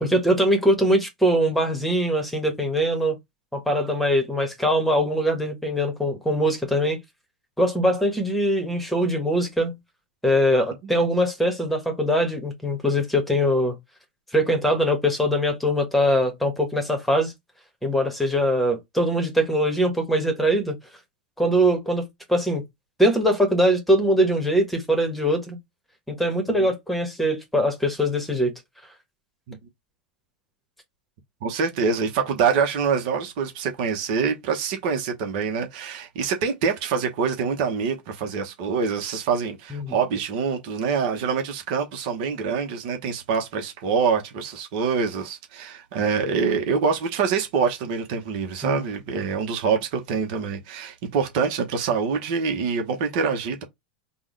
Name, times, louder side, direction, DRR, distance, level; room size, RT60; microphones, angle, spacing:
voice 1, 0.0-3.2 3.5-7.0 7.6-9.7 10.2-13.8 14.3-17.3 17.8-20.8 21.4-22.6 23.0-25.6 26.1-28.5 39.7-40.0 48.6-48.8, equal, ahead, 1.3 m, -22 dB
voice 2, 31.4-53.6, right 5 dB, 55° right, 1.0 m, -25 dB
3.6 x 2.3 x 3.2 m
hypercardioid pair, 100°, 5 cm